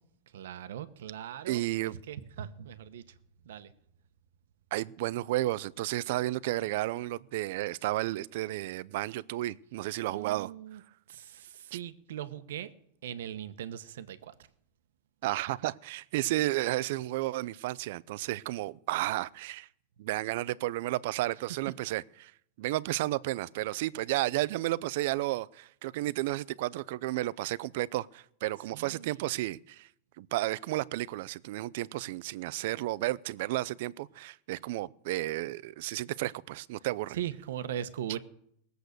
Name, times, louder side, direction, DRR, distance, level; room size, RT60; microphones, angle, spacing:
voice 1, 0.3-3.0 3.4-3.7 10.1-10.8 11.1-12.7 13.0-14.3 28.7-29.2 36.2-36.3 37.1-38.2, right 10 dB, 85° right, 1.0 m, -40 dB
voice 2, 1.5-1.9 4.7-10.5 11.7-11.8 15.2-19.7 20.0-22.3 22.6-29.9 30.2-37.2, right 17 dB, 60° right, 0.5 m, -32 dB
19.5 x 7.9 x 6.7 m
supercardioid pair, 155°, 0 cm